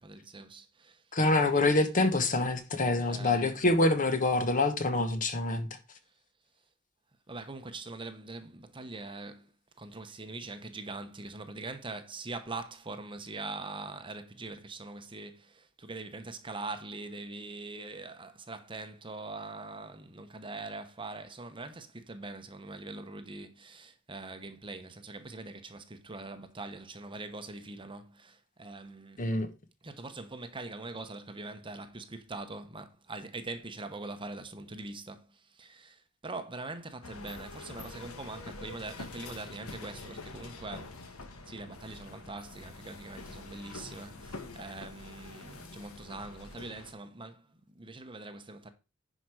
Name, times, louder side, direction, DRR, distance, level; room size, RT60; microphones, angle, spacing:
voice 1, 0.0-1.0 3.1-3.5 7.3-9.4 9.8-29.2 29.8-35.3 35.6-41.0 41.5-47.4 47.8-48.7, right 3 dB, 25° right, 0.9 m, -43 dB
voice 2, 1.1-5.7 29.2-29.5, left 2 dB, 40° left, 1.1 m, -26 dB
sound 1, 37.0-46.9, left 3 dB, 75° left, 1.4 m, -46 dB
10.5 x 5.1 x 4.8 m
head